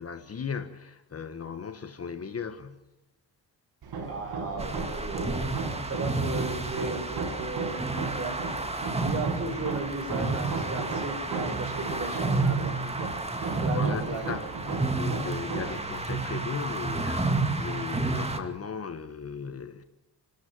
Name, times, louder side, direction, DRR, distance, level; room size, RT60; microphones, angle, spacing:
voice 1, 0.0-2.9 13.7-19.8, left 6 dB, 35° left, 1.5 m, -37 dB
Hammer, 3.8-15.9, right 4 dB, 70° right, 6.3 m, -36 dB
voice 2, 4.0-5.4 5.8-7.8 8.1-8.4 9.0-13.2 13.6-14.2, right 3 dB, 35° right, 7.3 m, -35 dB
sound 1, 4.6-18.4, right 3 dB, 15° right, 2.2 m, -31 dB
29.5 x 13.0 x 7.7 m
cardioid pair, 135°, 39 cm